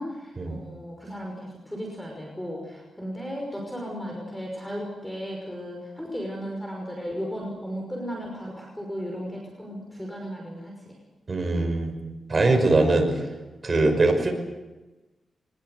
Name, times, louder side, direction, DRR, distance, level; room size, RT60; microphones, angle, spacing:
voice 1, 0.0-11.0, equal, 5° left, 0 dB, 5.7 m, -35 dB
voice 2, 11.3-11.9 12.3-13.1 13.6-14.3, right 2 dB, 35° right, 4 dB, 5.6 m, -21 dB
23.0 x 21.0 x 8.2 m, 1.1 s
wide cardioid pair, 115°, 0 cm